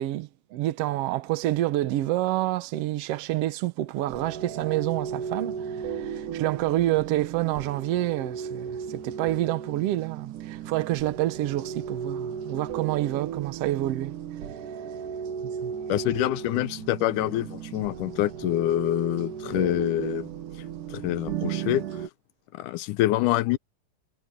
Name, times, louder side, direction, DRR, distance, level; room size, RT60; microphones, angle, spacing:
voice 1, 0.0-5.6 5.8-14.2 15.6-15.7, right 15 dB, 65° right, 1.7 m, -28 dB
sound 1, 4.1-22.1, right 8 dB, 80° right, 3.1 m, -35 dB
voice 2, 15.9-20.3 20.9-21.8 22.5-23.6, left 15 dB, 90° left, 2.2 m, -26 dB
omnidirectional pair, 3.6 m